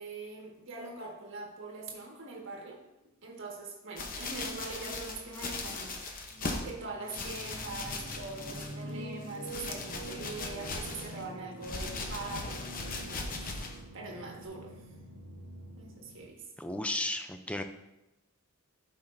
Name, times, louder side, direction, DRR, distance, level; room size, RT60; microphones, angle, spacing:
voice 1, 0.0-2.8 3.2-14.8 15.7-16.5, right 3 dB, 60° right, -1 dB, 1.6 m, -43 dB
sound 1, 4.0-6.7 7.1-8.9 9.2-11.2 11.6-13.8 14.4-14.5, left 3 dB, 40° left, 0.8 m, -39 dB
sound 2, 6.3-16.2, right 1 dB, 85° right, 1.2 m, -46 dB
voice 2, 16.6-17.6, left 1 dB, 5° left, 7 dB, 0.4 m, -34 dB
12.0 x 5.7 x 2.6 m, 0.95 s
head